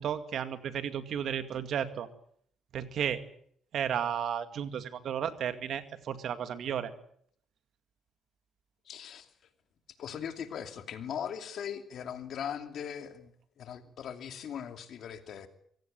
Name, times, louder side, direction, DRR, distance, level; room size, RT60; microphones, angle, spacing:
voice 1, 0.0-2.1 2.7-3.2 3.7-6.9, right 8 dB, 65° right, 11 dB, 2.2 m, -33 dB
voice 2, 8.9-9.3 10.0-13.3 13.6-15.5, left 8 dB, 70° left, 8 dB, 2.8 m, -39 dB
25.0 x 17.0 x 9.0 m, 0.67 s
cardioid pair, 90°, 0 cm